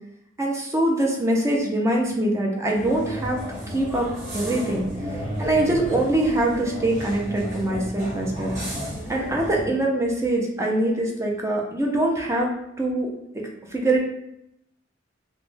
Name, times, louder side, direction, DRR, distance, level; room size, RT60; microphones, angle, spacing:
voice 1, 0.4-3.4 3.7-4.9 5.4-8.6 9.1-12.5 12.8-13.1 13.7-14.0, right 1 dB, 15° right, -1 dB, 0.4 m, -23 dB
sound 1, 2.7-9.7, equal, 40° right, 0.9 m, -33 dB
2.2 x 2.1 x 3.1 m, 0.80 s
head